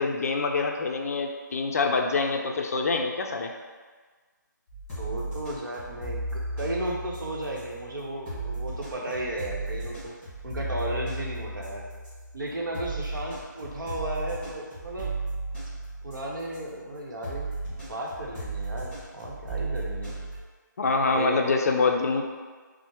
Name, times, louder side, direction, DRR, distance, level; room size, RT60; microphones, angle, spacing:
voice 1, 0.0-3.5 20.8-22.2, left 4 dB, 50° left, 3 dB, 0.4 m, -25 dB
sound 1, 4.7-16.7 17.2-20.4, right 2 dB, 10° left, 1.5 m, -35 dB
voice 2, 5.0-10.2 10.4-11.8 12.3-15.1 16.0-20.2 21.1-21.4, right 1 dB, 80° right, -2 dB, 0.8 m, -34 dB
4.2 x 2.0 x 3.0 m, 1.4 s
hypercardioid pair, 160°, 11 cm